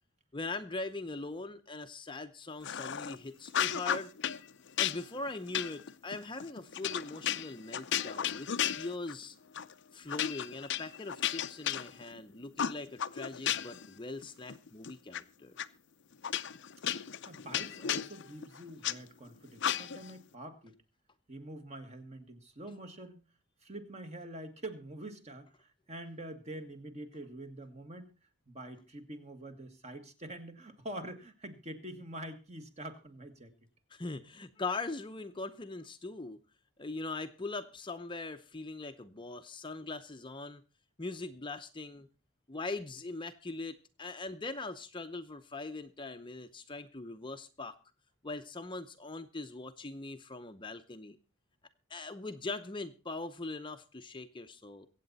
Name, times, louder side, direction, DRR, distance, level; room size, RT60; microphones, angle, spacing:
voice 1, 0.3-4.1 4.8-8.5 8.7-9.4 9.9-15.6 33.9-36.4 36.8-40.6 41.0-42.1 42.5-47.8 48.2-51.2 51.9-54.9, left 3 dB, 20° left, 7 dB, 0.8 m, -41 dB
sound 1, 2.6-3.2 3.5-4.4 4.8-9.2 9.5-9.7 10.1-12.2 12.6-13.9 14.2-15.2 15.6-15.7 16.2-19.0 19.6-20.1, left 9 dB, 55° left, 0.6 m, -34 dB
voice 2, 17.3-20.7 21.3-23.2 23.6-28.1 28.5-33.5, right 1 dB, 30° right, 7 dB, 1.7 m, -45 dB
23.5 x 8.4 x 4.1 m, 0.33 s
head